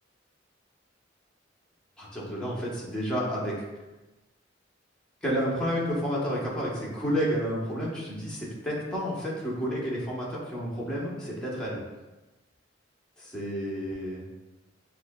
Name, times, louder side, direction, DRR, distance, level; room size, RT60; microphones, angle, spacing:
voice 1, 2.0-3.6 5.2-11.8 13.2-14.2, equal, 5° left, -6 dB, 1.1 m, -30 dB
7.1 x 2.8 x 2.3 m, 1.1 s
head